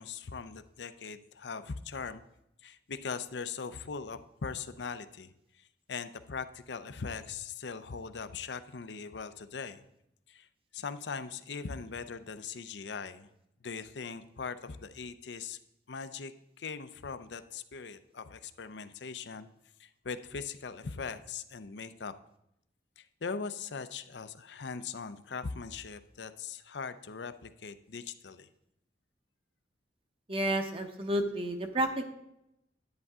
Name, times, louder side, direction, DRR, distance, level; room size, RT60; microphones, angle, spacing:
voice 1, 0.0-2.2 2.6-5.3 5.5-9.8 10.3-10.5 10.7-13.3 13.6-15.6 15.9-19.5 19.8-22.1 23.0-28.5, left 5 dB, 75° left, 11 dB, 0.6 m, -40 dB
voice 2, 30.3-32.0, right 1 dB, 30° right, 6 dB, 1.0 m, -31 dB
10.5 x 9.6 x 3.7 m, 0.82 s
head